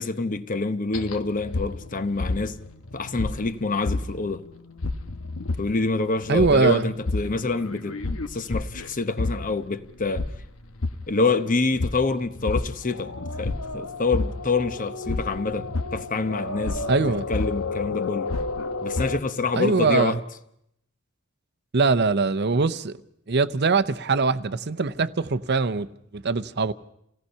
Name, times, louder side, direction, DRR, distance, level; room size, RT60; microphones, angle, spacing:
voice 1, 0.0-2.6 2.9-4.4 5.6-8.0 8.3-10.2 11.1-13.1 13.4-18.3 18.8-20.2, left 3 dB, 40° left, 0.9 m, -26 dB
sound 1, 0.9-19.2, left 3 dB, 90° left, 1.1 m, -31 dB
voice 2, 6.3-6.9 16.9-17.3 19.5-20.2 21.7-22.9 23.3-26.7, right 4 dB, 55° right, 0.7 m, -22 dB
28.0 x 17.5 x 5.6 m
head